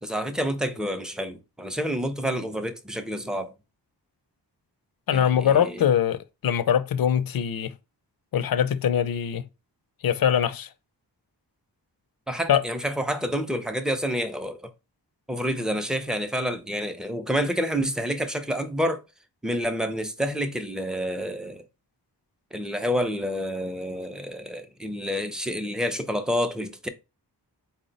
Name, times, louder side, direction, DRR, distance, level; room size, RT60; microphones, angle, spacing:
voice 1, 0.0-3.5 5.1-5.8 12.3-14.7 15.3-19.0 19.4-21.7 22.5-26.9, equal, ahead, 0.4 m, -28 dB
voice 2, 5.1-7.7 8.3-9.5 10.0-10.7 12.5-12.6, left 9 dB, 60° left, 0.5 m, -23 dB
4.3 x 2.1 x 3.9 m
wide cardioid pair, 70°, 42 cm